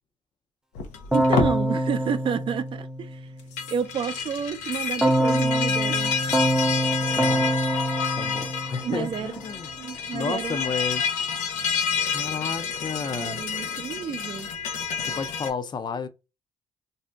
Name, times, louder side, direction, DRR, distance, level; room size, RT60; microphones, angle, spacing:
sound 1, 0.8-1.6 3.4-15.5, left 6 dB, 85° left, 0.6 m, -29 dB
Keyboard (musical), 1.1-3.4 5.0-9.3, right 1 dB, 5° right, 0.6 m, -25 dB
voice 1, 1.1-3.3 3.7-6.1 8.8-9.3 9.8-10.6 13.1-14.5, right 7 dB, 50° right, 0.5 m, -30 dB
voice 2, 7.2-7.5 8.2-9.7 10.1-11.1 12.1-13.4 15.0-16.1, left 5 dB, 40° left, 0.5 m, -32 dB
2.6 x 2.1 x 3.3 m
supercardioid pair, 75°, 12 cm